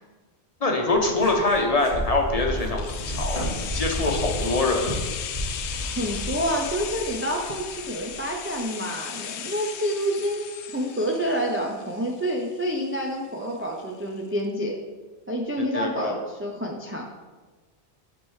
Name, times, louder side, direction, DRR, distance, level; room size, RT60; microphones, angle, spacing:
voice 1, 0.6-5.0 15.6-16.1, left 2 dB, 40° left, 1 dB, 0.8 m, -24 dB
sound 1, 0.8-7.1, equal, 70° right, 2.4 m, -32 dB
sound 2, 2.8-12.6 12.9-13.0, left 8 dB, 80° left, 0.8 m, -36 dB
voice 2, 6.0-14.8 15.3-17.0, equal, 20° right, 1 dB, 0.3 m, -28 dB
9.5 x 4.4 x 3.1 m, 1.3 s
omnidirectional pair, 1.1 m